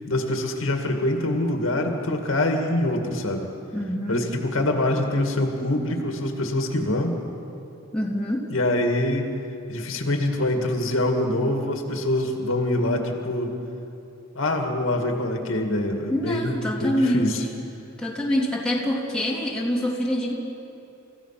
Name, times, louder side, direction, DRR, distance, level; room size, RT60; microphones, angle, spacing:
voice 1, 0.1-3.5 4.1-7.2 8.5-9.3 9.7-13.5 14.3-16.6 16.8-17.4, left 1 dB, 80° left, 3 dB, 2.2 m, -24 dB
voice 2, 3.7-4.2 7.9-8.5 16.1-17.5 18.0-20.3, left 1 dB, 5° left, -5 dB, 3.1 m, -25 dB
30.0 x 15.5 x 6.0 m, 2.8 s
head